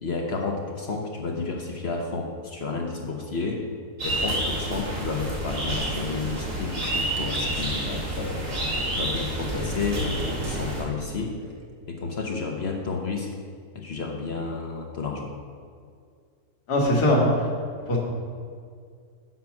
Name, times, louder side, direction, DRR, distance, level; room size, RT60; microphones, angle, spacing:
voice 1, 0.0-3.7 4.0-8.4 8.9-11.4 11.9-13.4 13.7-15.3, left 4 dB, 55° left, 2 dB, 0.8 m, -31 dB
sound 1, 4.0-10.8, right 1 dB, 80° right, 2.7 m, -29 dB
Gurgling, 7.2-11.8, right 2 dB, 45° right, 1.0 m, -38 dB
voice 2, 16.7-17.5 17.9-18.0, left 1 dB, 75° left, -2 dB, 2.0 m, -20 dB
7.7 x 5.3 x 5.8 m, 2.2 s
omnidirectional pair, 1.7 m